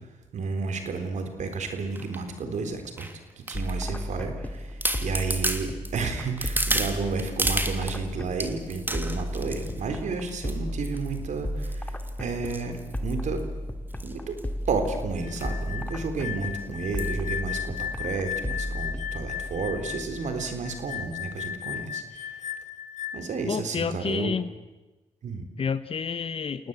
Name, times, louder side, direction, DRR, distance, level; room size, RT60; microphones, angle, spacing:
voice 1, 0.3-3.1 3.4-13.4 14.0-14.4 14.7-22.5 23.1-24.3 25.2-25.5, right 4 dB, 70° right, 7 dB, 4.0 m, -32 dB
sound 1, 1.9-2.2 3.0-4.0 4.5-4.6 4.8-8.0 8.4-9.8 10.3-10.6 10.8-11.2 11.6-13.4 13.9-14.1 14.4-14.5 14.7-14.9 15.4-15.5 15.9-16.0 17.0-17.2 17.8-17.9, right 1 dB, 15° right, 2.9 m, -32 dB
sound 2, 3.5-21.1, equal, 10° left, 2.4 m, -34 dB
sound 3, 15.2-23.4, left 10 dB, 70° left, 1.8 m, -36 dB
voice 2, 23.5-24.5 25.6-26.7, left 6 dB, 45° left, 13 dB, 1.0 m, -29 dB
28.5 x 18.5 x 8.2 m, 1.1 s
supercardioid pair, 55°, 13 cm